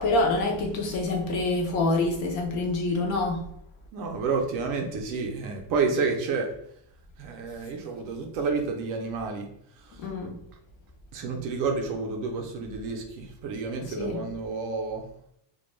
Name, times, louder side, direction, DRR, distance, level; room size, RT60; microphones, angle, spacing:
voice 1, 0.0-3.4 10.0-10.4 14.0-14.2, left 2 dB, 45° left, 0.4 m, -26 dB
voice 2, 3.9-6.5 7.2-9.5 9.8-10.1 11.1-15.1, right 4 dB, 45° right, 0.4 m, -30 dB
2.1 x 2.1 x 3.0 m
cardioid pair, 170°, 45 cm